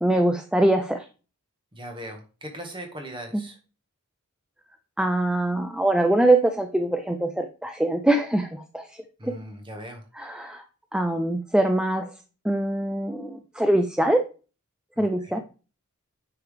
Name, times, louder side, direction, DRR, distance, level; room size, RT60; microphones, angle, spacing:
voice 1, 0.0-1.0 5.0-8.8 9.2-9.3 10.2-10.6 10.9-12.1 12.4-14.2 15.0-15.4, right 1 dB, 5° right, 6 dB, 0.5 m, -23 dB
voice 2, 1.7-3.6 9.2-10.0 14.9-15.4, equal, 25° right, 3 dB, 1.7 m, -39 dB
9.1 x 5.6 x 3.4 m, 0.35 s
head